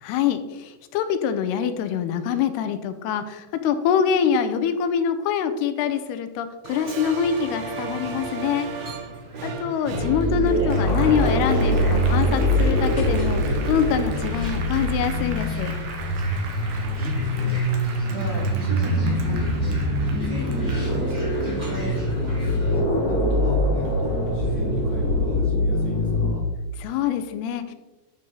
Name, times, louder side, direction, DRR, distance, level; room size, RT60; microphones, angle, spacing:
voice 1, 0.0-8.7 9.4-15.8 26.8-27.7, left 8 dB, 80° left, 10 dB, 2.6 m, -25 dB
Applause, 6.6-23.5 23.9-25.0, right 5 dB, 75° right, 3.0 m, -38 dB
sound 1, 7.3-22.8, equal, 25° right, 0.9 m, -44 dB
voice 2, 9.3-9.8 16.6-26.4, right 1 dB, 50° right, -5 dB, 1.3 m, -36 dB
sound 2, 9.9-26.3, equal, 60° left, 1.8 m, -23 dB
13.0 x 5.6 x 3.8 m, 1.1 s
omnidirectional pair, 4.7 m